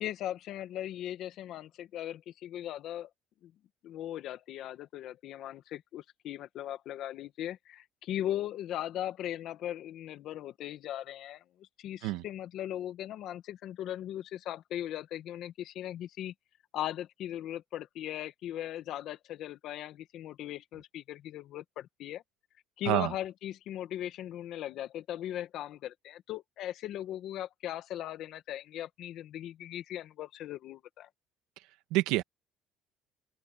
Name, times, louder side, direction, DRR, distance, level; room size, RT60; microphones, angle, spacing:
voice 1, 0.0-3.1 3.4-3.5 3.8-16.3 16.7-22.2 22.8-31.1, left 12 dB, 55° left, 1.7 m, -38 dB
voice 2, 31.9-32.2, right 18 dB, 85° right, 2.2 m, -27 dB
open air
cardioid pair, 150°, 0 cm